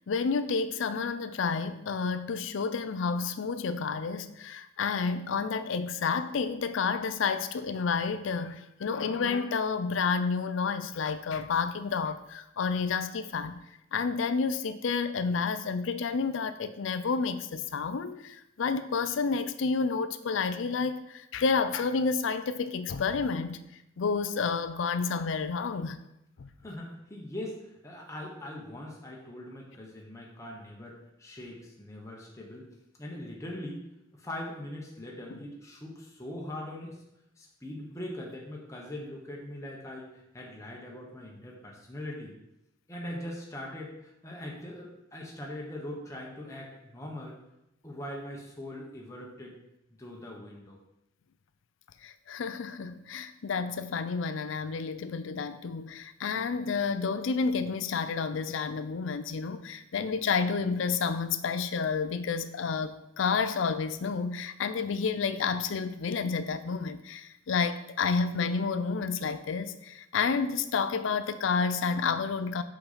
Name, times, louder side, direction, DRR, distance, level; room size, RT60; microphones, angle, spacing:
voice 1, 0.1-13.6 13.9-23.6 24.0-26.0 26.4-26.5 35.3-35.4 52.0-72.6, left 5 dB, 70° left, 12 dB, 0.4 m, -30 dB
voice 2, 26.6-27.6 27.8-32.7 33.0-33.8 34.1-37.0 37.4-42.4 42.9-47.4 47.8-49.5 50.0-50.8, left 1 dB, 15° left, -2 dB, 1.1 m, -41 dB
5.6 x 5.2 x 4.2 m, 0.85 s
head